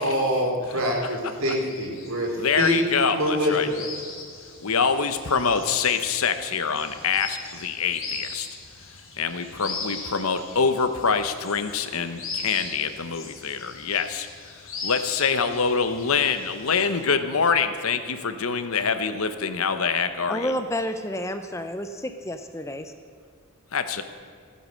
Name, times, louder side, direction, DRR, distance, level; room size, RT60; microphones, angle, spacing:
voice 1, 0.0-2.8 3.1-3.8, equal, 70° right, 0 dB, 3.2 m, -25 dB
sound 1, 1.6-17.0, left 4 dB, 65° left, 3.1 m, -39 dB
voice 2, 2.4-3.7 4.6-8.5 9.2-14.3 14.8-20.5 23.7-24.0, left 5 dB, 80° left, 10 dB, 1.0 m, -25 dB
voice 3, 20.3-22.9, left 1 dB, 15° left, 8 dB, 0.6 m, -30 dB
16.0 x 9.9 x 6.5 m, 2.2 s
head